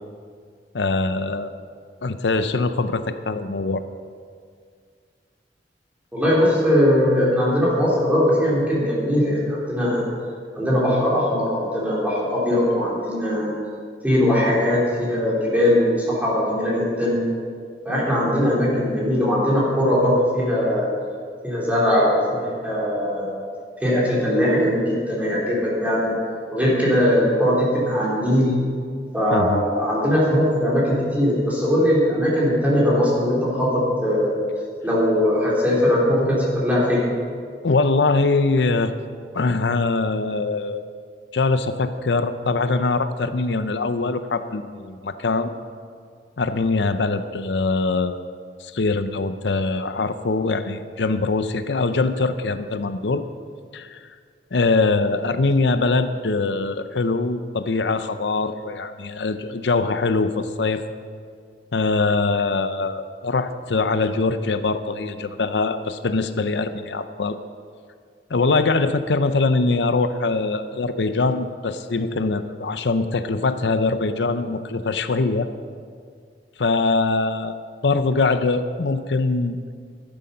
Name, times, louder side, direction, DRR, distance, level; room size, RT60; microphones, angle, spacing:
voice 1, 0.7-1.5 2.0-3.8 29.3-29.6 37.6-38.9 39.3-40.8 41.3-45.5 46.4-48.2 48.6-53.2 53.7-54.0 54.5-60.8 61.7-67.4 68.3-75.5 76.6-77.6 77.8-79.6, left 3 dB, 75° left, 10 dB, 0.6 m, -22 dB
voice 2, 6.1-10.0 10.5-13.5 14.0-17.2 17.8-20.9 21.4-23.3 23.8-26.2 26.5-28.5 29.1-34.4 34.8-37.0, equal, 10° right, -6 dB, 3.3 m, -20 dB
12.5 x 12.0 x 5.6 m, 2.1 s
head